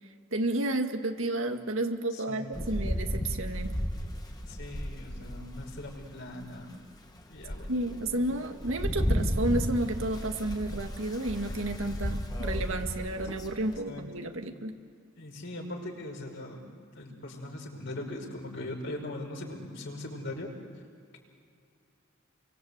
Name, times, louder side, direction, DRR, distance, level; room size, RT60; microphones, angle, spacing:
voice 1, 0.3-3.8 7.7-14.8, right 1 dB, 75° right, 5 dB, 2.1 m, -31 dB
voice 2, 2.1-2.7 4.5-6.7 7.3-7.7 13.9-14.0 15.2-16.7 17.0-20.5, left 1 dB, 60° left, 1 dB, 5.3 m, -40 dB
Rain, 2.5-6.1 6.6-6.7 7.2-13.8, equal, 20° left, 1.9 m, -33 dB
29.5 x 24.0 x 8.3 m, 2.3 s
head